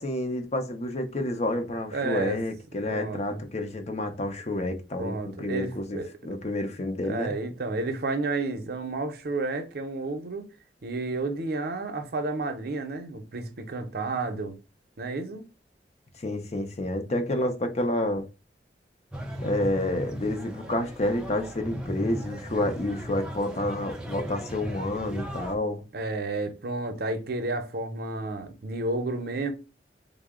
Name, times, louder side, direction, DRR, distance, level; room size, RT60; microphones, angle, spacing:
voice 1, 0.0-7.3 16.2-18.2 19.4-25.8, left 1 dB, 40° left, 0.6 m, -29 dB
voice 2, 1.9-2.4 2.9-3.4 5.0-6.1 7.0-10.5 10.8-14.6 15.0-15.5 25.9-29.5, right 2 dB, 60° right, 0.6 m, -31 dB
sound 1, 19.1-25.5, equal, 5° right, 0.4 m, -36 dB
3.7 x 2.0 x 3.6 m
head